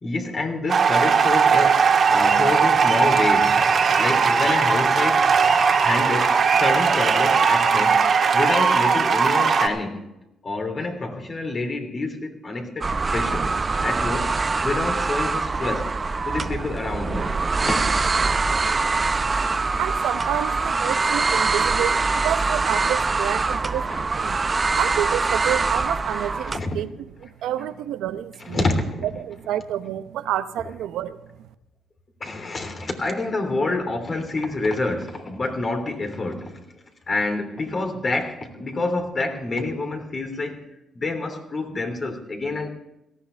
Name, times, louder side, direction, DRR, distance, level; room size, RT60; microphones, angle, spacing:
voice 1, 0.0-5.3 5.8-8.1 8.3-10.0 10.4-13.5 13.8-14.3 14.6-15.9 16.3-17.3 17.6-17.8 23.9-24.0 26.5-26.8 28.4-29.0 32.2-36.5 37.1-40.6 40.9-42.7, left 2 dB, 35° left, 3.3 m, -27 dB
sound 1, 0.7-9.7, right 5 dB, 50° right, 1.7 m, -18 dB
sound 2, 12.8-26.6, right 4 dB, 30° right, 0.6 m, -23 dB
voice 2, 19.4-24.4 24.8-26.9 27.4-28.6 29.2-31.2, right 11 dB, 85° right, 0.7 m, -29 dB
18.5 x 15.0 x 3.4 m
cardioid pair, 90°, 0 cm